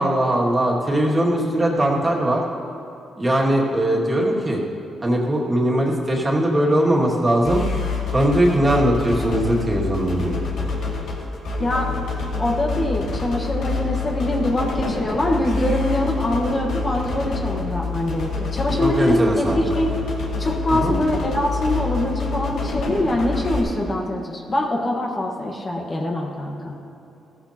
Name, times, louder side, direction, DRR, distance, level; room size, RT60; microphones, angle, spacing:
voice 1, 0.0-2.4 3.2-4.6 5.0-7.6 8.1-10.4 18.8-19.6 20.8-20.9, right 1 dB, 25° right, -3 dB, 2.2 m, -20 dB
sound 1, 7.4-23.6, left 3 dB, 80° left, 2.3 m, -27 dB
voice 2, 11.6-11.9 12.4-19.9 20.4-26.9, left 1 dB, 35° left, 0 dB, 1.4 m, -23 dB
15.5 x 14.5 x 2.9 m, 2.7 s
cardioid pair, 85°, 0 cm